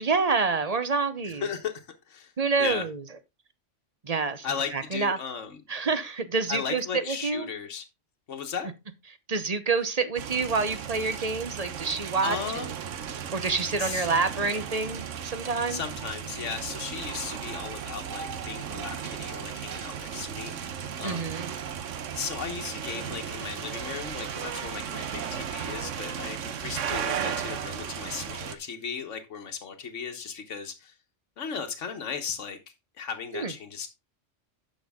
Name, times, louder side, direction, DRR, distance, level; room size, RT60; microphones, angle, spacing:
voice 1, 0.0-1.5 2.4-3.0 4.0-4.5 4.7-5.2 5.7-7.5 9.3-12.7 13.3-15.8 21.0-21.5 33.3-33.5, right 4 dB, 35° right, 0.9 m, -27 dB
voice 2, 1.2-2.3 2.6-2.9 4.4-5.6 6.5-7.8 8.3-8.7 12.2-12.7 13.8-14.1 15.7-21.3 22.1-30.9 31.4-32.6 33.0-33.9, left 6 dB, 80° left, 1.5 m, -36 dB
sound 1, 10.2-28.6, right 8 dB, 85° right, 1.2 m, -35 dB
10.0 x 6.4 x 3.5 m
omnidirectional pair, 1.3 m